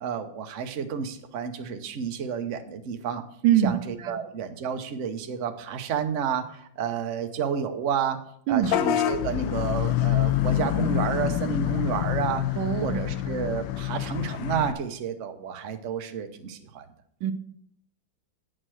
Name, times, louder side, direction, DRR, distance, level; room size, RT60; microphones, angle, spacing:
voice 1, 0.0-3.2 3.6-8.2 8.5-12.4 12.8-16.9, right 7 dB, 50° right, 6 dB, 1.0 m, -30 dB
voice 2, 3.4-4.1 8.5-8.7 12.6-13.0 17.2-17.3, right 10 dB, 80° right, 11 dB, 1.4 m, -23 dB
Vehicle horn car horn honking / Bus, 8.6-14.7, left 12 dB, 75° left, 1.3 m, -26 dB
8.8 x 6.6 x 6.2 m, 0.67 s
omnidirectional pair, 2.2 m